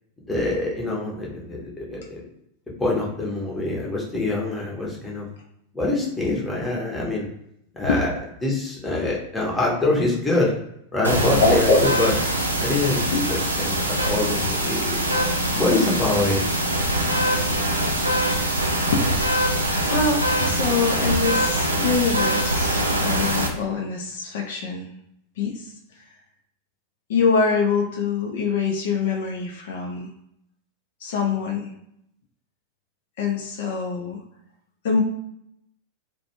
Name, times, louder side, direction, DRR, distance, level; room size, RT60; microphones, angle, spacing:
voice 1, 0.3-2.2 2.8-5.3 5.7-7.3 7.7-8.1 8.4-10.5 10.9-12.1 12.6-15.0 15.5-16.4, left 2 dB, 10° left, -3 dB, 0.8 m, -25 dB
sound 1, 11.0-23.5, right 1 dB, 80° right, 0.4 m, -23 dB
voice 2, 11.4-12.1 13.1-13.2 18.9-19.1 19.9-24.9 25.4-25.7 27.1-30.1 31.0-31.7 33.2-34.2 34.8-35.0, left 4 dB, 55° left, 0 dB, 0.4 m, -24 dB
2.4 x 2.1 x 2.9 m, 0.76 s
figure-of-eight pair, 90°, 0 cm